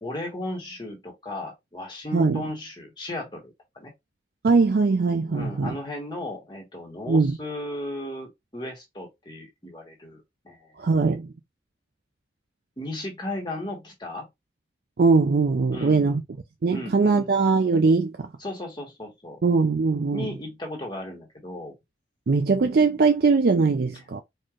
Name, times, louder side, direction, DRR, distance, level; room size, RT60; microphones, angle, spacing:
voice 1, 0.0-3.9 5.3-10.7 12.8-14.3 15.7-16.2 16.7-17.3 18.4-19.4 20.1-21.7, left 1 dB, 25° left, 1.5 m, -35 dB
voice 2, 2.1-2.4 4.4-5.8 7.1-7.4 10.8-11.3 15.0-16.2 16.6-18.3 19.4-20.3 22.3-24.2, right 4 dB, 55° right, 0.4 m, -21 dB
4.3 x 3.1 x 2.5 m
head